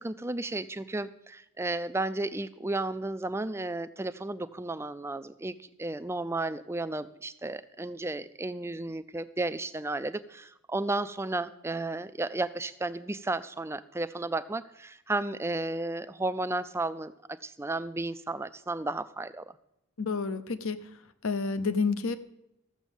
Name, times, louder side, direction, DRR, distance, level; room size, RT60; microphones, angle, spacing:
voice 1, 0.0-19.4, right 2 dB, 10° right, 13 dB, 0.4 m, -33 dB
voice 2, 20.0-20.8 21.2-22.2, left 4 dB, 65° left, 12 dB, 0.8 m, -29 dB
14.0 x 7.3 x 7.2 m, 0.83 s
head